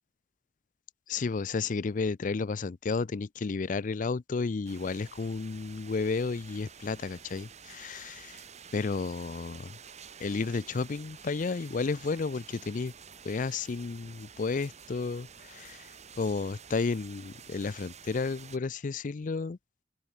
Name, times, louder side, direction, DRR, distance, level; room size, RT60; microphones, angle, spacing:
voice 1, 1.1-8.4 8.7-9.8 10.2-12.9 13.2-19.6, left 4 dB, 45° left, 0.4 m, -32 dB
sound 1, 4.7-18.6, right 7 dB, 40° right, 1.9 m, -50 dB
open air
head